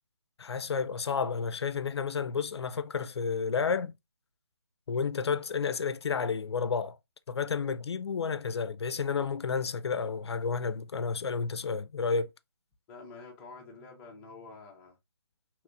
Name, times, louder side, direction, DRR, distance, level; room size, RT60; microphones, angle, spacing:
voice 1, 0.4-3.9 4.9-7.0 7.3-12.3, left 5 dB, 80° left, 0.4 m, -31 dB
voice 2, 12.9-15.0, left 3 dB, 5° left, 0.4 m, -48 dB
3.2 x 3.0 x 2.5 m
hypercardioid pair, 165°, 14 cm